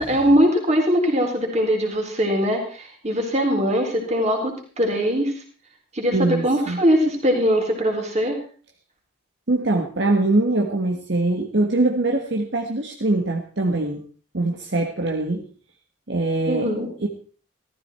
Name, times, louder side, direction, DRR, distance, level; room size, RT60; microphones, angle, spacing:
voice 1, 0.0-5.3 5.9-8.4 16.5-16.9, equal, 35° right, 2 dB, 3.8 m, -21 dB
voice 2, 6.1-6.8 9.5-14.0 14.3-15.4 16.1-16.7 17.0-17.1, right 2 dB, 60° right, 1 dB, 1.6 m, -22 dB
15.0 x 14.0 x 4.4 m, 0.39 s
head